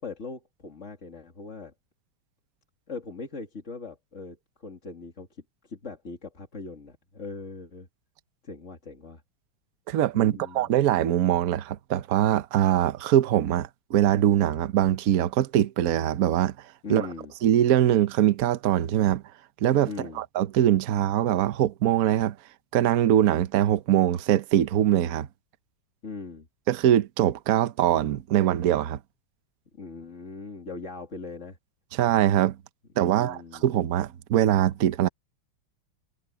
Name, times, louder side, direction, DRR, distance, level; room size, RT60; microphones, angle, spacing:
voice 1, 0.0-1.7 2.9-7.9 8.4-9.2 10.1-10.7 16.8-17.3 19.9-20.2 26.0-26.5 29.7-31.6 33.1-33.7, left 4 dB, 35° left, 2.5 m, -40 dB
voice 2, 9.9-16.5 16.9-17.1 17.4-19.2 19.6-19.9 20.2-22.3 22.7-25.3 26.7-29.0 31.9-32.6 33.0-35.1, right 11 dB, 60° right, 1.0 m, -22 dB
omnidirectional pair, 2.3 m